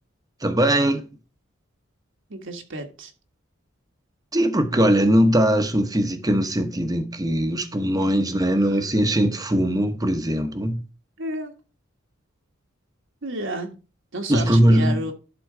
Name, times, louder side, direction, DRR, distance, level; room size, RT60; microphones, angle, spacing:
voice 1, 0.4-1.0 4.3-10.8 14.3-15.0, equal, 20° right, 1.0 m, -20 dB
voice 2, 2.3-3.1 8.7-8.8 11.2-11.5 13.2-13.7 14.1-15.1, right 1 dB, 65° right, 1.4 m, -31 dB
11.5 x 3.9 x 4.9 m
head